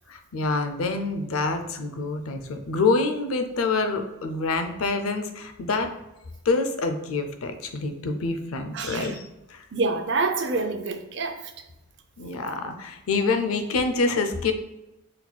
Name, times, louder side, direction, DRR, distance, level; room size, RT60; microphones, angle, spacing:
voice 1, 0.1-5.9 6.5-9.6 12.2-14.5, left 3 dB, 85° left, 7 dB, 0.5 m, -26 dB
voice 2, 8.7-9.2 9.7-11.5, right 3 dB, 55° right, 6 dB, 0.5 m, -27 dB
4.2 x 4.0 x 2.2 m, 0.97 s
head